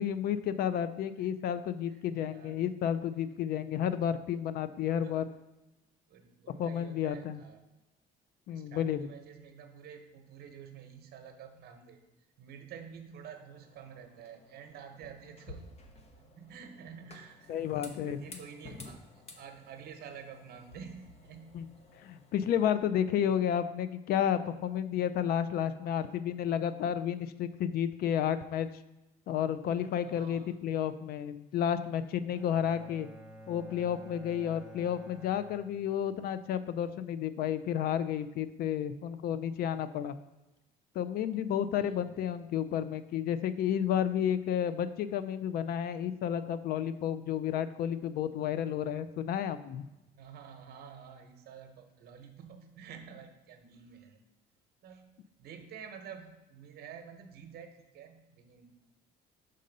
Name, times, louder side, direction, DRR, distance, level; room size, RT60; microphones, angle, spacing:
voice 1, 0.0-5.3 6.6-7.4 8.5-9.1 17.5-18.2 21.5-21.7 22.1-28.7 29.3-33.1 33.5-40.1 40.9-49.8, left 9 dB, 65° left, 12 dB, 0.4 m, -31 dB
voice 2, 1.9-2.6 5.0-5.4 6.1-7.6 8.5-12.0 12.4-21.8 30.0-30.6 41.7-42.2 48.4-48.6 50.1-54.2 54.8-58.9, right 7 dB, 70° right, 6 dB, 0.8 m, -50 dB
sound 1, 13.5-22.7, left 2 dB, 40° left, 0.8 m, -53 dB
Bowed string instrument, 32.3-36.4, equal, 5° right, 0.8 m, -51 dB
5.4 x 3.8 x 5.2 m, 1.0 s
cardioid pair, 110°, 17 cm